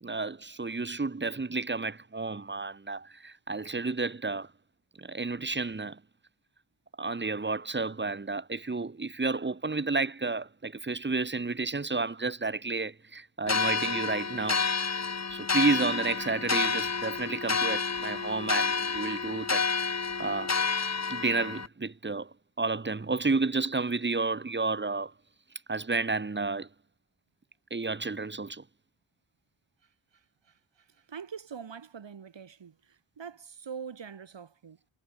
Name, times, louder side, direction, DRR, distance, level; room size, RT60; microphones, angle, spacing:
voice 1, 0.0-4.5 5.0-6.0 7.0-14.7 15.3-20.6 21.1-25.1 25.7-26.7 27.7-28.6, right 3 dB, 25° right, 1.1 m, -31 dB
sound 1, 13.5-21.7, left 5 dB, 35° left, 1.2 m, -30 dB
voice 2, 31.1-32.7 33.2-34.8, right 7 dB, 70° right, 2.0 m, -43 dB
wide cardioid pair, 115°, 45 cm